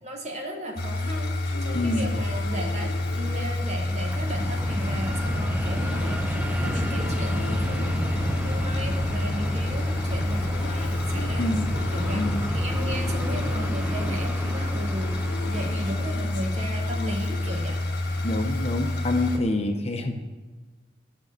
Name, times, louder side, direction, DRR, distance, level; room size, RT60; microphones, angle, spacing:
voice 1, 0.0-1.3 1.6-7.9 8.4-11.5 11.9-17.8, equal, 40° right, 1 dB, 1.6 m, -36 dB
sound 1, 0.7-4.8 5.7-9.9 10.2-18.7, left 4 dB, 85° left, 0.6 m, -42 dB
sound 2, 0.8-19.4, left 2 dB, 55° left, 1.3 m, -28 dB
Fixed-wing aircraft airplane, 1.5-19.3, right 1 dB, 10° right, 0.5 m, -34 dB
voice 2, 1.7-2.1 11.4-11.7 12.1-12.5 18.2-20.2, left 2 dB, 35° left, 5 dB, 0.8 m, -27 dB
12.0 x 6.1 x 6.5 m, 1.3 s
head